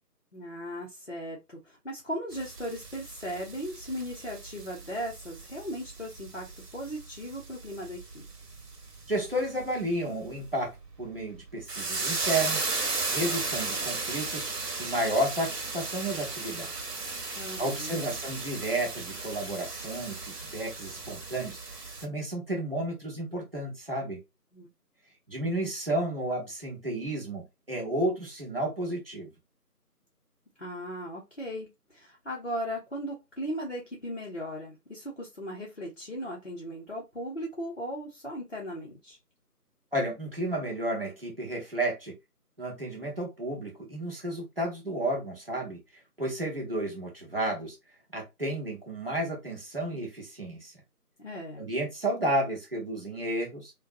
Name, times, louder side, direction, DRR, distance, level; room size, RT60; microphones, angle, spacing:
voice 1, 0.3-8.3 17.4-18.1 24.5-24.7 30.6-39.2 51.2-51.7, equal, 45° left, 0.7 m, -37 dB
sound 1, 2.3-22.1, right 3 dB, 85° right, 0.9 m, -36 dB
voice 2, 9.1-10.7 11.0-12.6 13.1-14.4 14.8-16.7 17.6-24.2 25.3-29.3 39.9-42.1 42.6-47.8 48.1-50.7 51.6-53.7, right 1 dB, 35° right, 0.9 m, -32 dB
2.6 x 2.2 x 2.5 m
figure-of-eight pair, 165°, 47 cm